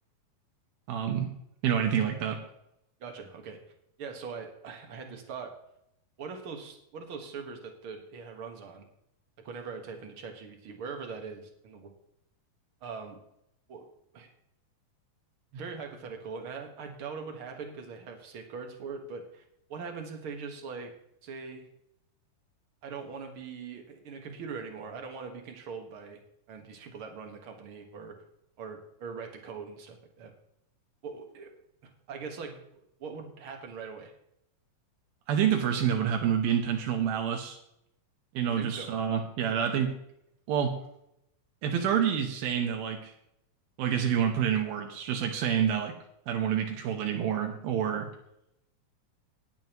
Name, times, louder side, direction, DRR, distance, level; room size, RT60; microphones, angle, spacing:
voice 1, 0.9-1.3 1.6-2.4 35.3-37.6 38.3-39.9 40.5-40.7 41.6-43.1 43.8-45.9 46.3-48.1, right 8 dB, 80° right, 3 dB, 2.9 m, -28 dB
voice 2, 3.0-3.6 4.0-5.6 6.2-8.9 9.4-11.9 12.8-13.2 13.7-13.9 14.1-14.3 15.5-19.4 19.7-20.9 21.2-21.7 22.8-26.2 26.5-28.1 28.6-30.3 31.0-31.5 31.8-34.1 38.5-38.9, right 5 dB, 50° right, 4 dB, 1.8 m, -41 dB
18.5 x 8.9 x 3.0 m, 0.79 s
omnidirectional pair, 4.2 m